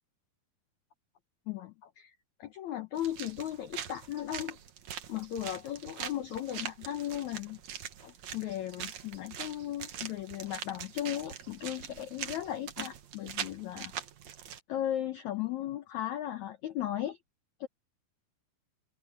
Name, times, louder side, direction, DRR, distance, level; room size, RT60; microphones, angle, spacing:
voice 1, 1.5-2.1 2.4-4.6 5.1-7.6 8.0-13.9 14.7-17.2 17.6-17.7, left 12 dB, 80° left, 1.6 m, -36 dB
sound 1, 3.0-14.6, right 9 dB, 60° right, 2.1 m, -43 dB
omnidirectional pair, 4.8 m